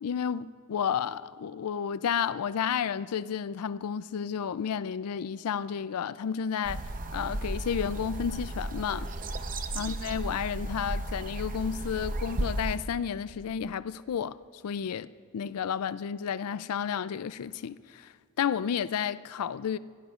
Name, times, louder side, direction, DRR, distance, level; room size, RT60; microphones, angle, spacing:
voice 1, 0.0-6.8 7.1-9.1 9.8-14.4 14.6-19.8, left 7 dB, 85° left, 0.4 m, -31 dB
sound 1, 6.6-12.8, right 1 dB, 40° right, 0.8 m, -34 dB
24.0 x 17.5 x 2.4 m
head